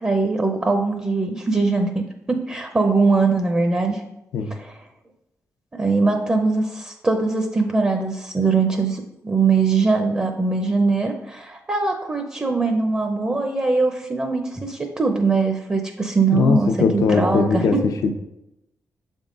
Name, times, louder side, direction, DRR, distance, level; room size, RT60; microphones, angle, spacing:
voice 1, 0.0-4.0 4.5-4.8 5.7-17.8, right 4 dB, 25° right, 4 dB, 0.7 m, -21 dB
voice 2, 16.3-18.1, left 5 dB, 75° left, 6 dB, 0.6 m, -20 dB
6.9 x 3.6 x 3.9 m, 0.87 s
cardioid pair, 80°, 6 cm